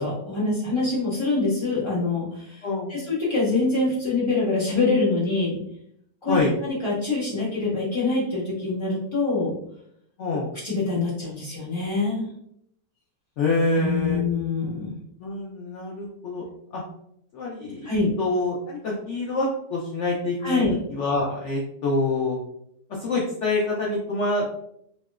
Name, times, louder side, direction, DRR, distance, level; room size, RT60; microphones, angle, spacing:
voice 1, 0.0-5.6 6.2-9.5 10.3-10.4 10.6-12.3 13.8-14.9 17.8-18.1 20.4-20.7, left 3 dB, 15° left, -10 dB, 1.4 m, -25 dB
voice 2, 2.6-3.0 6.3-6.5 10.2-10.5 13.4-14.2 15.2-16.5 16.7-16.8 17.3-17.9 18.2-20.6 20.9-22.4 22.9-24.5, left 2 dB, 90° left, -3 dB, 0.6 m, -26 dB
3.1 x 2.8 x 2.3 m, 0.72 s
omnidirectional pair, 1.9 m